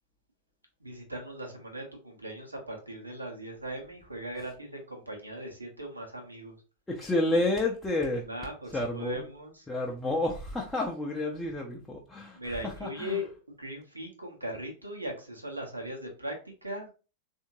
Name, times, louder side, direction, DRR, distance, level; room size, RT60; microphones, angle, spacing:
voice 1, 0.8-6.6 8.3-9.6 12.3-13.3 13.6-16.9, equal, 85° right, 1.0 m, -39 dB
voice 2, 6.9-8.3 8.7-9.3 9.7-13.2, left 2 dB, 10° left, 0.6 m, -30 dB
3.5 x 2.7 x 2.8 m
figure-of-eight pair, 90°, 0 cm